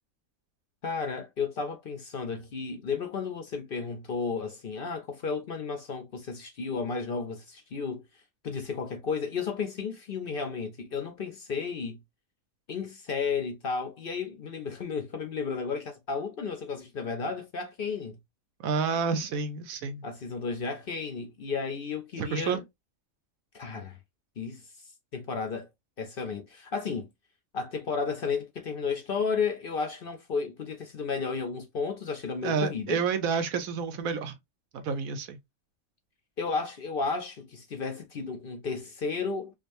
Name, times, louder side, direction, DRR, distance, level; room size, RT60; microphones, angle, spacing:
voice 1, 0.8-8.0 8.4-12.0 12.7-18.2 20.0-22.6 23.5-24.0 24.4-24.6 25.1-25.7 26.0-27.1 27.5-33.0 36.4-39.5, left 5 dB, 55° left, 0.7 m, -33 dB
voice 2, 18.6-20.0 22.2-22.6 32.4-34.4 34.7-35.4, right 5 dB, 85° right, 1.2 m, -29 dB
5.0 x 2.4 x 2.5 m
omnidirectional pair, 1.4 m